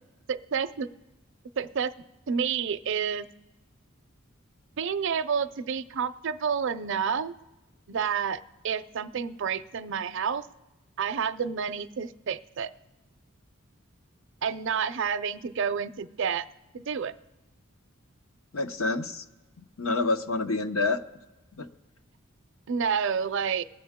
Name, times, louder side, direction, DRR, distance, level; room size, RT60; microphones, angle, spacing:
voice 1, 0.3-0.9 1.6-1.9 2.3-3.3 4.8-7.3 7.9-8.4 8.6-10.5 11.0-12.7 14.4-16.5 16.7-17.1 22.7-23.6, right 6 dB, 60° right, 14 dB, 0.5 m, -29 dB
voice 2, 18.5-19.2 19.6-21.0 21.6-21.7, left 3 dB, 80° left, 9 dB, 0.8 m, -28 dB
22.0 x 8.0 x 3.6 m, 1.1 s
head